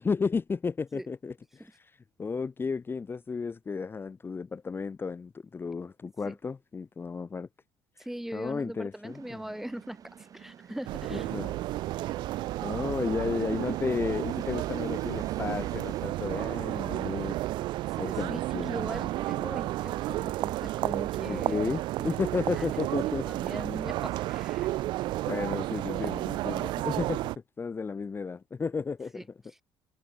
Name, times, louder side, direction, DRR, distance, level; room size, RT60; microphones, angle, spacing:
voice 1, 0.0-1.9 2.2-7.5 8.3-9.4 11.1-11.6 12.6-17.4 18.0-18.8 21.3-23.3 25.3-27.2 27.6-29.1, left 5 dB, 25° left, 0.9 m, -33 dB
voice 2, 8.0-11.3 18.0-18.4 18.7-21.7 22.6-22.7 23.1-24.7 29.1-29.2, right 1 dB, 5° right, 1.6 m, -40 dB
sound 1, 9.0-16.0, right 8 dB, 45° right, 1.4 m, -50 dB
sound 2, 10.8-27.4, right 16 dB, 70° right, 0.4 m, -32 dB
supercardioid pair, 85°, 8 cm